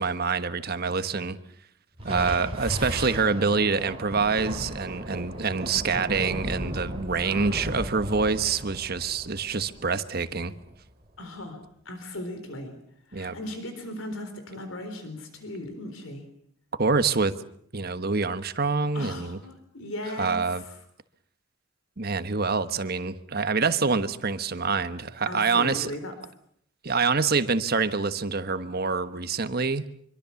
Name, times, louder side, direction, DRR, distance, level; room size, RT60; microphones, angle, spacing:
voice 1, 0.0-1.4 2.0-10.5 13.1-13.4 16.8-17.3 17.7-19.4 20.2-20.6 22.0-25.9 26.8-29.8, right 4 dB, 50° right, 11 dB, 1.3 m, -26 dB
voice 2, 2.0-2.5 7.2-7.6 11.2-11.6 11.9-12.7 13.1-16.2 18.9-20.7 25.3-26.1, left 1 dB, 80° left, 7 dB, 4.1 m, -37 dB
Thunder, 2.0-10.8, right 1 dB, 30° right, 3.6 m, -36 dB
25.5 x 23.5 x 7.1 m, 0.68 s
head